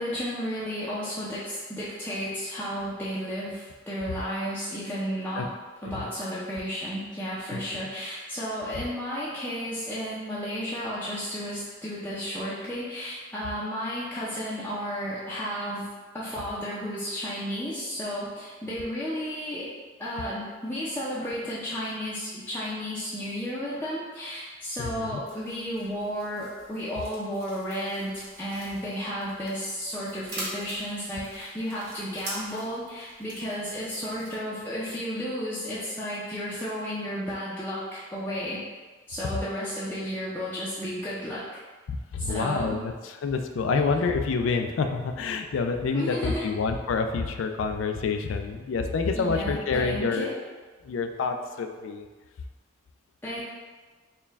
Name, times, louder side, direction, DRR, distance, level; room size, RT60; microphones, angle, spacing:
voice 1, 0.0-5.5 5.8-15.9 16.1-19.7 20.0-38.6 39.1-41.4 42.2-42.8 45.9-46.5 49.1-50.3 53.2-53.4, equal, 10° left, -9 dB, 0.5 m, -33 dB
voice 2, 24.8-25.2 42.1-50.3 50.8-52.1, left 4 dB, 70° left, 6 dB, 0.3 m, -28 dB
sound 1, 25.2-34.3, right 2 dB, 85° right, 1.3 m, -44 dB
4.4 x 2.2 x 3.4 m, 1.4 s
head